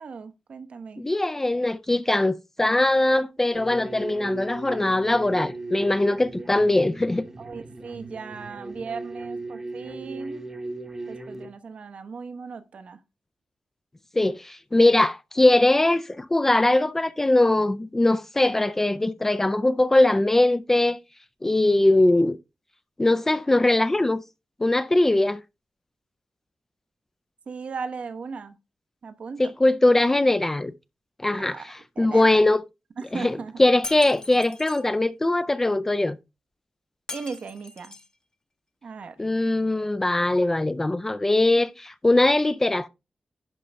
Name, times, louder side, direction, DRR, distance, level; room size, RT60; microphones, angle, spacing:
voice 1, 0.0-1.1 7.4-10.5 11.1-13.0 27.5-28.6 29.0-29.4 31.3-32.4 33.0-33.6 37.1-38.0 38.8-39.2, right 5 dB, 60° right, 0.9 m, -37 dB
voice 2, 1.0-7.2 14.2-21.0 21.4-22.4 23.0-24.2 24.6-25.4 29.4-30.7 31.2-31.6 32.0-32.6 33.1-33.3 33.6-36.2 39.2-42.9, left 2 dB, 15° left, 0.4 m, -21 dB
sound 1, 3.5-11.5, right 2 dB, 25° right, 0.9 m, -37 dB
Shatter, 33.8-34.8 37.1-38.1, left 3 dB, 35° left, 0.9 m, -39 dB
11.0 x 5.2 x 3.3 m
wide cardioid pair, 155°, 2 cm